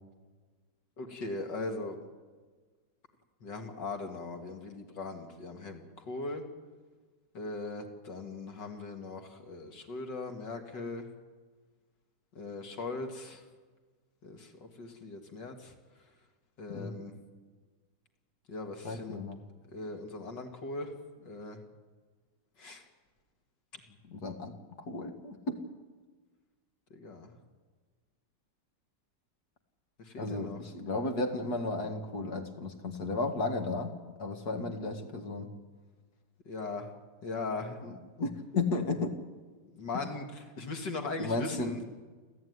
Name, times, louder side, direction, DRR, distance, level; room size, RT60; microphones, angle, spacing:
voice 1, 1.0-2.0 3.4-6.4 7.3-11.1 12.3-13.4 14.2-15.7 16.6-17.1 18.5-19.2 19.7-20.9 21.2-21.6 22.6-22.8 23.7-23.8 26.9-27.3 30.0-30.6 36.5-36.9 37.2-37.8 39.7-41.8, left 3 dB, 85° left, 4 dB, 3.1 m, -39 dB
voice 2, 18.8-19.4 24.1-25.6 30.2-33.9 34.2-35.5 37.8-39.2 41.2-41.7, left 3 dB, 65° left, 5 dB, 2.6 m, -34 dB
28.5 x 13.5 x 9.7 m, 1.4 s
omnidirectional pair, 1.8 m